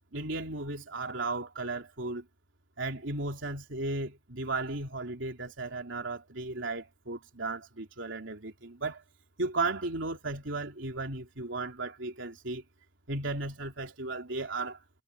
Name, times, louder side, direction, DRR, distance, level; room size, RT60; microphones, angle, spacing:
voice 1, 0.1-2.3 2.8-9.0 9.4-12.6 13.1-14.8, right 2 dB, 90° right, 3.4 m, -35 dB
head